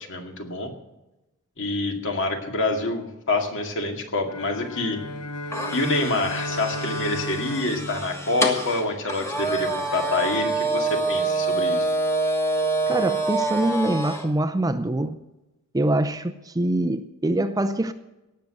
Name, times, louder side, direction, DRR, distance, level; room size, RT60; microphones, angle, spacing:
voice 1, 0.1-0.7 1.6-5.0 5.7-11.9, left 2 dB, 60° left, 3 dB, 2.2 m, -27 dB
sound 1, 4.2-8.9, left 1 dB, 80° left, 0.9 m, -34 dB
sound 2, 5.5-14.3, right 2 dB, 10° left, 1.4 m, -26 dB
voice 2, 12.9-15.2 15.7-17.9, right 1 dB, 15° right, 11 dB, 0.5 m, -24 dB
17.5 x 6.7 x 7.6 m, 1.0 s
head